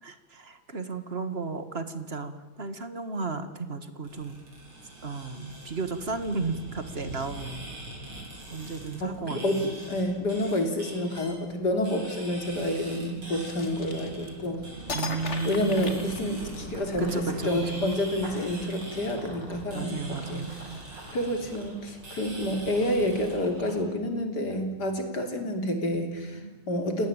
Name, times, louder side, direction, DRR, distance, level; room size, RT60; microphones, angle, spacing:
voice 1, 0.0-4.4 5.0-7.7 8.5-9.7 14.9-15.9 17.0-17.9 19.7-20.8 26.2-26.6, right 4 dB, 30° right, 10 dB, 1.8 m, -34 dB
sound 1, 4.0-23.3, right 2 dB, 90° right, 8.7 m, -43 dB
voice 2, 9.0-14.6 15.4-20.5 21.1-26.4 26.7-27.1, left 1 dB, 50° left, 5 dB, 3.9 m, -29 dB
sound 2, 13.3-14.5 14.9-16.8, left 3 dB, 35° left, 2.3 m, -37 dB
Run / Bird vocalization bird call bird song, 16.4-23.8, right 1 dB, 60° right, 6.0 m, -48 dB
29.5 x 18.5 x 9.0 m, 1.1 s
omnidirectional pair, 2.3 m